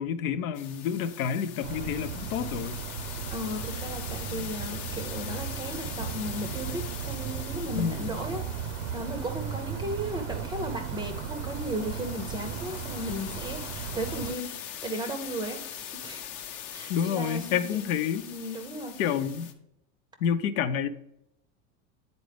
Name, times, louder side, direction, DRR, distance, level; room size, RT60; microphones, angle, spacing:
voice 1, 0.0-2.8 7.8-8.1 16.9-18.2 19.0-19.5 20.2-20.9, left 8 dB, 85° left, 0.7 m, -29 dB
sound 1, 0.5-19.5, left 10 dB, 50° left, 0.8 m, -42 dB
sound 2, 1.6-14.3, right 8 dB, 60° right, 0.6 m, -36 dB
voice 2, 3.3-8.4 8.9-16.3 16.7-17.9 18.3-18.9, equal, 10° right, 0.5 m, -35 dB
9.0 x 4.1 x 3.3 m
supercardioid pair, 130°, 42 cm